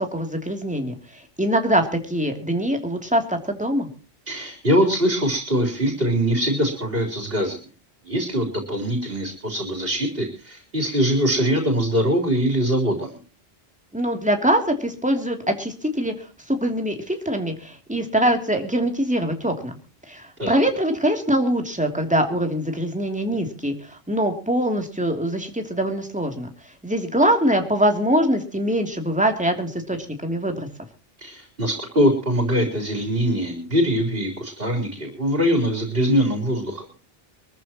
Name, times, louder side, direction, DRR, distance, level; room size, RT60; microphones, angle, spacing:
voice 1, 0.0-3.9 13.9-19.7 20.1-26.5 26.8-30.0 30.2-30.7, right 1 dB, 5° right, 4 dB, 3.0 m, -23 dB
voice 2, 4.3-7.6 8.0-13.2 20.4-20.7 31.2-36.9, equal, 65° right, 3 dB, 4.3 m, -22 dB
24.0 x 14.0 x 3.0 m, 0.37 s
omnidirectional pair, 1.0 m